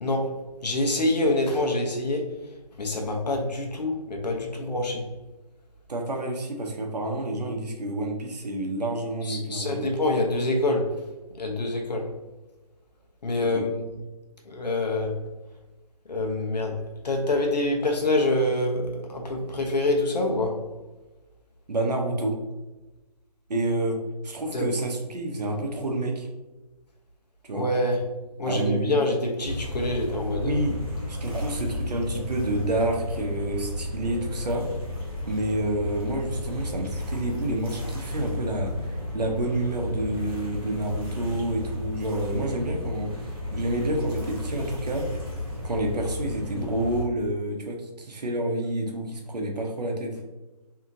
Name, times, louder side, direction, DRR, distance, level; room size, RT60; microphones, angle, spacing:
voice 1, 0.0-0.4 0.6-2.3 2.8-5.1 9.2-11.0 11.4-12.1 13.2-13.9 14.4-15.2 16.1-20.6 24.5-24.7 27.5-28.1 28.4-30.6, left 1 dB, 85° left, 2 dB, 0.7 m, -26 dB
voice 2, 5.9-9.9 13.5-13.7 21.7-22.4 23.5-24.0 24.2-26.3 27.4-27.7 28.5-29.0 30.4-30.8 31.1-34.7 35.3-43.1 43.5-45.2 45.6-50.2, right 1 dB, 80° right, 2 dB, 0.7 m, -29 dB
sound 1, 29.4-47.0, left 1 dB, 35° right, 0.9 m, -33 dB
2.8 x 2.4 x 2.6 m, 1.1 s
figure-of-eight pair, 170°, 21 cm